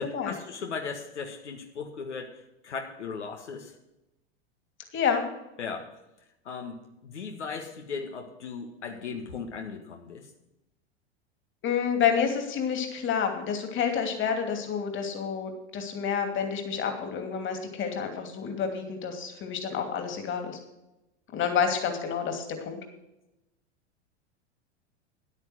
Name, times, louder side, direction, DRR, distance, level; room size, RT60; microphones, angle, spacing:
voice 1, 0.0-3.7 5.6-5.9 6.4-10.3, left 5 dB, 85° left, 3 dB, 1.7 m, -37 dB
voice 2, 4.9-5.3 11.6-20.6 21.3-22.8, left 7 dB, 35° left, 5 dB, 2.7 m, -29 dB
10.5 x 9.2 x 6.3 m, 0.94 s
hypercardioid pair, 95°, 34 cm